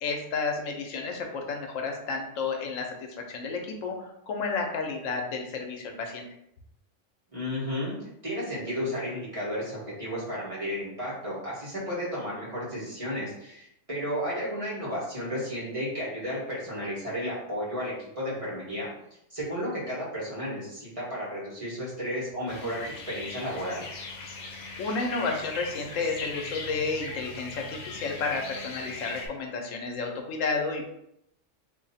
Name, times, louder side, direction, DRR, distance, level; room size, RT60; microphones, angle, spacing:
voice 1, 0.0-6.3 24.8-30.9, left 4 dB, 90° left, 3 dB, 1.0 m, -31 dB
voice 2, 7.3-18.9 19.3-23.8, equal, 30° right, -7 dB, 1.4 m, -33 dB
sound 1, 22.5-29.3, left 3 dB, 70° left, 1.0 m, -39 dB
2.8 x 2.6 x 4.0 m, 0.77 s
omnidirectional pair, 1.3 m